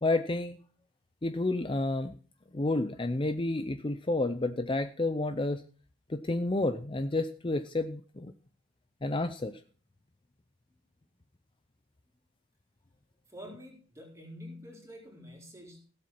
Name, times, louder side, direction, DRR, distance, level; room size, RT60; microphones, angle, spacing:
voice 1, 0.0-0.6 1.2-2.1 2.5-5.6 6.1-8.3 9.0-9.6, left 2 dB, 25° left, 10 dB, 0.5 m, -30 dB
voice 2, 13.3-15.8, equal, 15° right, -1 dB, 4.0 m, -47 dB
16.5 x 7.5 x 5.9 m, 0.42 s
head